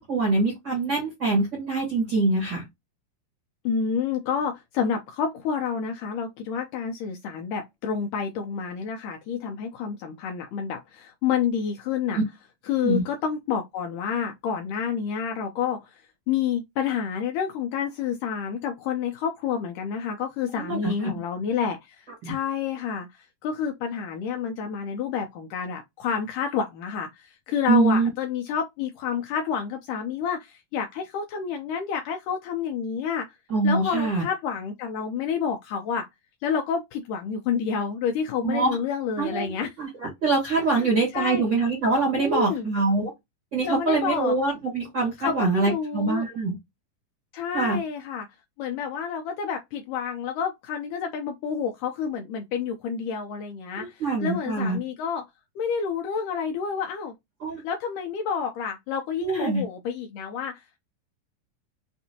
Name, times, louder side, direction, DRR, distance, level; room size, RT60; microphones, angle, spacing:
voice 1, 0.0-2.7 12.1-12.2 12.8-13.0 20.5-21.1 22.2-22.3 27.7-28.1 33.5-34.2 38.4-38.7 39.2-39.5 39.8-43.1 43.5-46.6 47.5-47.8 53.8-54.8 57.4-57.6 59.2-59.6, right 3 dB, 50° right, 1.4 m, -24 dB
voice 2, 3.6-12.2 12.7-33.3 33.6-36.1 36.4-39.7 40.8-41.5 42.1-42.7 43.6-44.3 45.2-46.3 47.3-48.3 48.6-55.2 55.6-57.1 57.6-60.8, left 7 dB, 80° left, 1.9 m, -29 dB
5.8 x 2.6 x 2.7 m
omnidirectional pair, 4.2 m